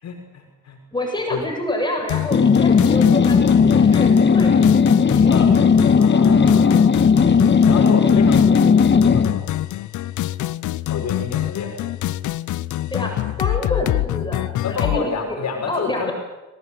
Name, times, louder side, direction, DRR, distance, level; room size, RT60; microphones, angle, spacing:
voice 1, 0.0-0.8 1.3-1.4 5.3-5.6 6.0-7.0 7.6-9.6 10.9-11.8 13.4-13.5 14.6-16.1, left 5 dB, 60° left, 2 dB, 6.3 m, -29 dB
voice 2, 0.9-4.8 5.1-5.7 12.9-15.4 15.7-16.1, left 1 dB, 15° left, 1 dB, 7.6 m, -28 dB
sound 1, 2.1-15.0, left 14 dB, 80° left, 0.9 m, -26 dB
sound 2, 2.3-9.4, left 6 dB, 35° left, 1.5 m, -15 dB
23.0 x 19.0 x 9.3 m, 1.1 s
cardioid pair, 90°, 30 cm